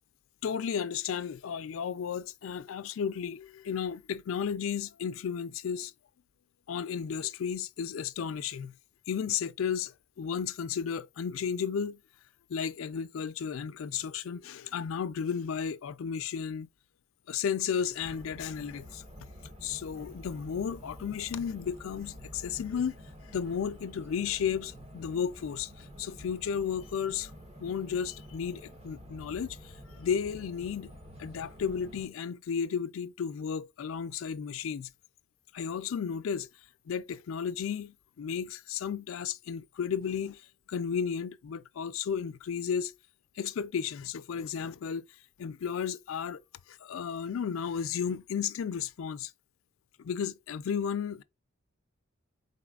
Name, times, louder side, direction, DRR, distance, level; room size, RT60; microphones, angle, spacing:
voice 1, 0.4-5.9 6.7-8.7 9.1-12.0 12.5-16.7 17.3-19.0 19.6-23.0 23.3-27.3 27.6-29.6 30.0-30.9 31.2-34.9 35.5-36.5 36.9-40.4 40.7-42.9 43.4-45.0 45.4-46.4 46.7-49.3 50.0-51.2, left 7 dB, 75° left, 0.4 m, -33 dB
sound 1, 18.0-32.1, equal, 30° right, 0.8 m, -49 dB
4.2 x 4.0 x 2.3 m
head